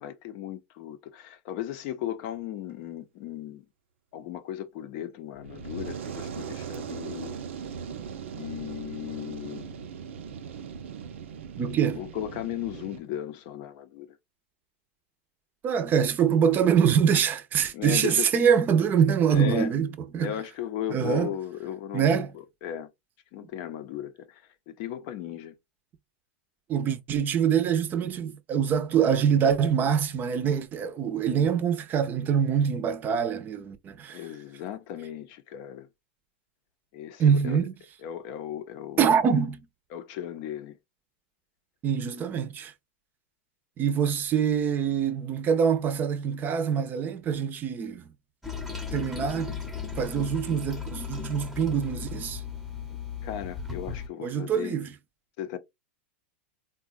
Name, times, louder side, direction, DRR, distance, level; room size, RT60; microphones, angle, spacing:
voice 1, 0.0-3.6 4.1-7.3 8.3-9.8 12.0-14.1 17.7-18.3 19.3-19.7 20.2-22.2 22.6-22.9 23.3-25.5 34.1-35.9 36.9-37.6 38.0-39.2 39.9-40.8 53.2-54.7 55.4-55.6, left 11 dB, 55° left, 0.6 m, -36 dB
Fire, 5.3-13.0, right 7 dB, 85° right, 0.6 m, -39 dB
voice 2, 11.6-12.0 15.6-20.3 20.9-21.3 21.9-22.3 26.7-34.2 37.2-37.7 39.0-39.6 41.8-42.7 43.8-48.0 48.9-49.6 50.0-52.4 54.2-54.9, right 7 dB, 30° right, 0.6 m, -24 dB
Toilet flush, 48.4-54.1, left 6 dB, ahead, 0.8 m, -36 dB
3.8 x 2.2 x 2.5 m
hypercardioid pair, 125°, 6 cm